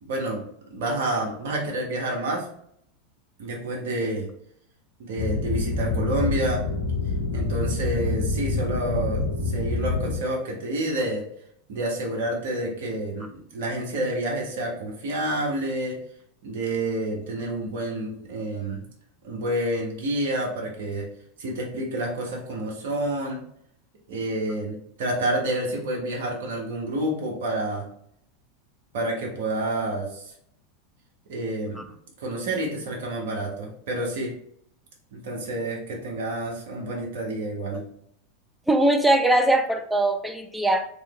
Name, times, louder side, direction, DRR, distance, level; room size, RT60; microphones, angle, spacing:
voice 1, 0.0-0.4 0.7-2.5 3.4-4.3 5.0-6.7 7.3-11.2 11.7-16.0 16.4-18.8 19.2-21.1 21.4-23.4 24.1-27.8 28.9-30.3 31.3-31.9 32.2-34.3 35.1-37.8, right 1 dB, 65° right, -2 dB, 1.3 m, -29 dB
sound 1, 5.2-10.2, left 3 dB, 55° left, 1.0 m, -26 dB
voice 2, 38.7-40.9, right 1 dB, 5° right, 6 dB, 0.5 m, -21 dB
3.6 x 3.2 x 3.1 m, 0.70 s
hypercardioid pair, 90°, 0 cm